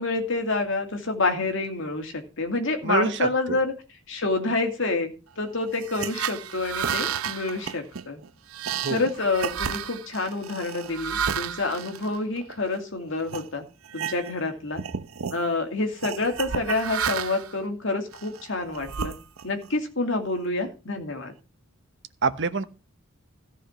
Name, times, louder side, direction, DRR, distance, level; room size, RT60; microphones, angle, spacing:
voice 1, 0.0-3.7 4.1-5.1 5.4-8.2 8.9-13.6 13.9-14.8 15.3-19.1 19.4-21.3, left 3 dB, 65° left, 2.4 m, -28 dB
voice 2, 2.8-3.6 8.8-9.0 22.2-22.6, right 4 dB, 60° right, 1.1 m, -26 dB
sound 1, 5.7-12.8 13.3-13.5 13.8-14.5 14.7-15.4 16.0-17.5 18.1-19.7, right 7 dB, 80° right, 0.7 m, -32 dB
14.0 x 5.0 x 7.1 m
head